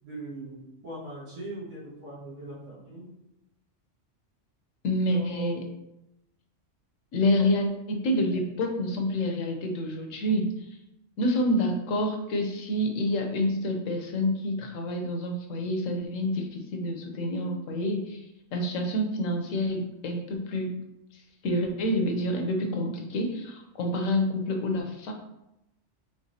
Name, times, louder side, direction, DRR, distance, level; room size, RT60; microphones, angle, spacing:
voice 1, 0.0-3.1 5.1-5.6 7.4-7.5, right 1 dB, 90° right, -10 dB, 2.2 m, -41 dB
voice 2, 4.8-5.6 7.1-10.5 11.2-18.2 18.5-20.7 21.4-25.1, left 1 dB, 85° left, 3 dB, 1.1 m, -28 dB
4.9 x 3.2 x 2.7 m, 0.88 s
omnidirectional pair, 1.3 m